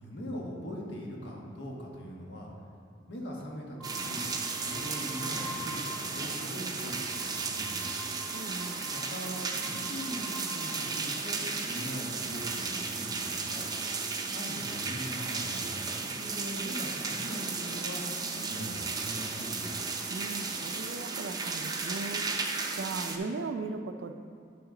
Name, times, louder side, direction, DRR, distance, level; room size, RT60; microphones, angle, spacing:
voice 1, 0.0-2.5 3.1-4.3 4.5-7.9 8.9-11.4 11.6-13.7 14.3-15.7 16.1-18.0 18.3-19.7, equal, 70° left, -2 dB, 1.3 m, -41 dB
sound 1, 3.8-6.3 6.7-11.2 12.0-12.6, equal, ahead, 0.9 m, -46 dB
sound 2, 3.8-23.2, right 4 dB, 20° right, 0.5 m, -34 dB
voice 2, 8.3-8.8 20.1-22.3 22.7-24.2, right 3 dB, 85° right, 8 dB, 0.4 m, -38 dB
8.3 x 5.9 x 3.8 m, 2.3 s
head